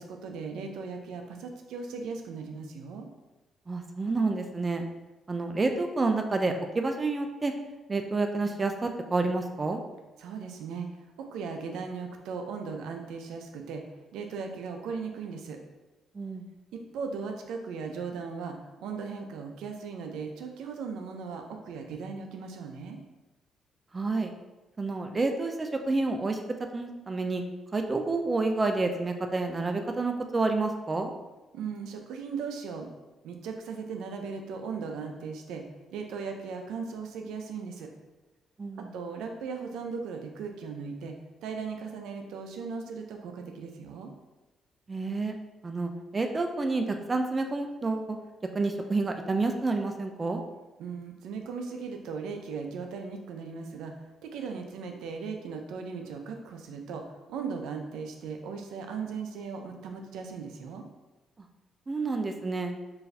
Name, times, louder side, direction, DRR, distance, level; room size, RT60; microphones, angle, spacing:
voice 1, 0.0-3.1 10.2-13.8 14.1-15.6 16.7-23.0 31.5-32.9 33.2-35.6 35.9-37.9 38.8-41.1 41.4-44.1 50.8-57.0 57.3-60.8, right 5 dB, 85° right, 4 dB, 0.5 m, -38 dB
voice 2, 3.7-4.8 5.3-7.5 7.9-9.8 16.1-16.4 23.9-24.3 24.8-26.4 26.7-27.4 27.7-31.1 38.6-38.9 44.9-45.3 45.6-48.2 48.5-50.4 61.9-62.7, right 3 dB, 30° right, 5 dB, 0.4 m, -29 dB
4.5 x 2.6 x 3.2 m, 1.1 s
cardioid pair, 90°, 0 cm